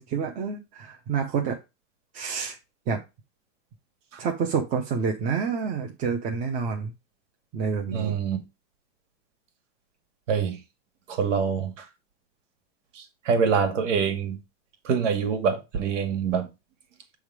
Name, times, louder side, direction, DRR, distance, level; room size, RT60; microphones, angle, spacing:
voice 1, 0.0-1.6 2.1-2.6 2.9-3.0 4.2-6.9 7.5-8.1, right 6 dB, 20° right, 0.6 m, -28 dB
voice 2, 7.9-8.4 10.3-10.6 11.1-11.9 13.3-14.4 14.8-16.5, right 6 dB, 85° right, 2.1 m, -25 dB
7.4 x 3.6 x 4.7 m
supercardioid pair, 170°, 36 cm